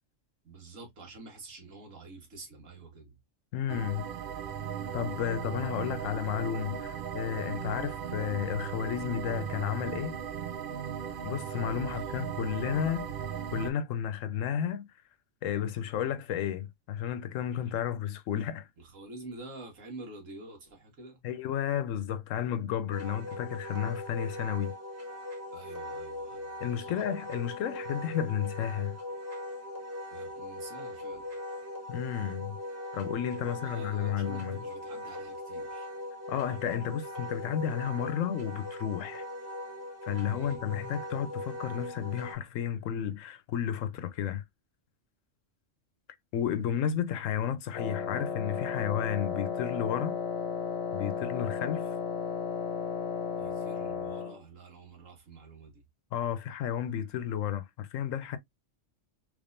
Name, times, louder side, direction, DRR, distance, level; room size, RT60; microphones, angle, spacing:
voice 1, 0.4-3.2 11.8-12.3 17.6-17.7 18.8-21.2 25.5-27.2 30.1-31.3 33.4-35.9 40.3-40.9 53.4-55.8, right 3 dB, 80° right, 1.7 m, -48 dB
voice 2, 3.5-4.1 4.9-10.2 11.2-13.1 13.5-14.9 15.4-18.7 21.2-24.7 26.6-29.0 31.9-32.6 32.9-34.6 36.3-39.2 40.0-44.4 46.3-50.1 50.9-51.9 56.1-58.4, left 9 dB, 85° left, 1.0 m, -32 dB
sound 1, 3.7-13.7, right 8 dB, 55° right, 0.7 m, -37 dB
Wind instrument woodwind instrument, 22.9-42.4, left 1 dB, 10° right, 1.3 m, -40 dB
Wind instrument woodwind instrument 2, 47.7-54.4, left 6 dB, 60° left, 1.0 m, -34 dB
3.4 x 3.4 x 2.5 m
omnidirectional pair, 1.3 m